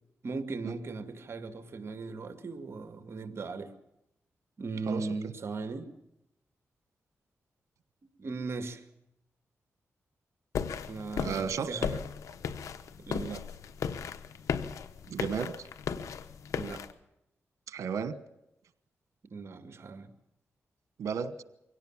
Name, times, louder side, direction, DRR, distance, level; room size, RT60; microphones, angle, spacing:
voice 1, 0.2-3.7 4.6-5.9 8.2-8.8 10.9-12.0 13.0-13.4 16.5-16.8 19.3-20.1, right 4 dB, 55° right, 9 dB, 2.1 m, -38 dB
sound 1, 10.5-16.9, left 7 dB, 90° left, 1.1 m, -36 dB
voice 2, 11.2-11.8 15.1-15.6 17.7-18.2 21.0-21.3, right 6 dB, 90° right, 13 dB, 1.3 m, -33 dB
23.5 x 17.5 x 7.4 m, 0.85 s
cardioid pair, 85°, 5 cm